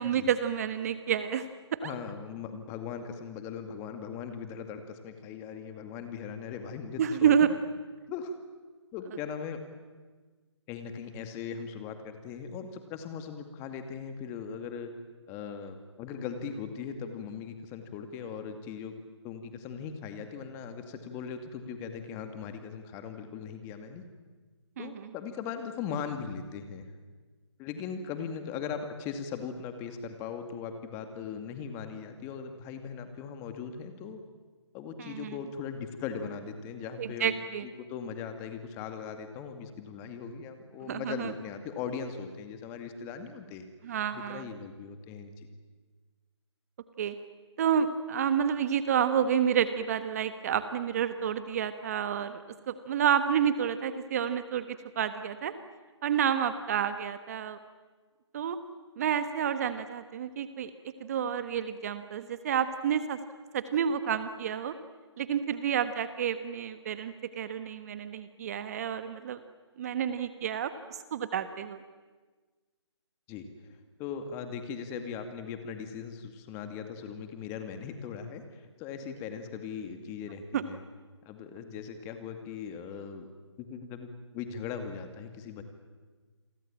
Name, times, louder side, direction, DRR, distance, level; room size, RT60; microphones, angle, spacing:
voice 1, 0.0-1.5 1.8-1.9 7.0-7.5 24.8-25.1 35.0-35.4 37.0-37.6 40.9-41.3 43.8-44.5 47.0-47.1 47.6-55.5 56.0-57.6 58.3-58.6 59.0-60.7 61.0-63.2 63.5-64.7 65.2-69.4 69.8-71.8 80.5-80.6, right 8 dB, 30° right, 11 dB, 1.2 m, -29 dB
voice 2, 1.8-7.5 8.1-8.3 8.9-9.6 10.7-14.9 15.3-18.9 19.2-24.0 24.8-26.9 27.6-34.2 34.7-37.4 37.6-43.6 44.1-45.5 73.3-73.5 74.0-80.8 81.3-83.3 83.6-85.6, left 6 dB, 15° left, 7 dB, 2.3 m, -39 dB
29.0 x 23.0 x 8.9 m, 1.4 s
hypercardioid pair, 155°, 15 cm